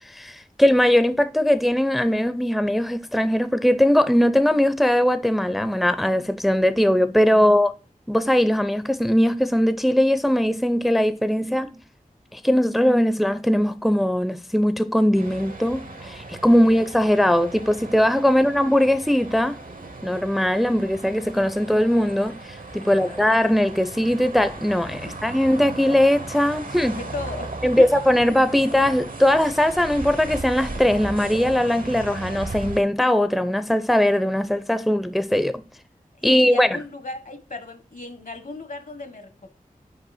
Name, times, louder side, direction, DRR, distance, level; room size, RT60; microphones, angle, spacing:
voice 1, 0.0-7.7 8.1-11.7 12.3-19.6 20.0-27.0 27.6-35.6 36.2-36.7, left 1 dB, ahead, 0.5 m, -20 dB
sound 1, 15.1-32.8, right 2 dB, 70° right, 1.0 m, -37 dB
voice 2, 22.8-23.2 25.0-25.2 26.9-27.9 36.2-39.5, left 2 dB, 65° left, 1.2 m, -36 dB
5.5 x 5.0 x 4.1 m
wide cardioid pair, 40°, 15 cm